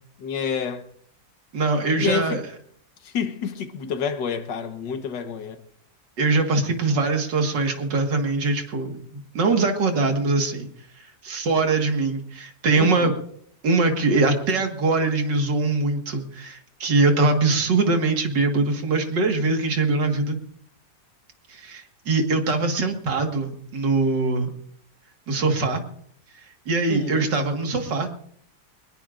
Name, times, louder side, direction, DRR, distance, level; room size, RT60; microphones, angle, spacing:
voice 1, 0.2-0.8 2.0-2.4 3.0-5.6 12.8-13.2 26.9-27.3, left 6 dB, 85° left, 1.8 m, -28 dB
voice 2, 1.5-2.4 6.2-10.7 11.0-13.1 13.6-20.4 21.5-24.5 25.3-25.8 26.7-28.1, right 3 dB, 90° right, 2.5 m, -22 dB
22.5 x 20.0 x 2.5 m
omnidirectional pair, 1.8 m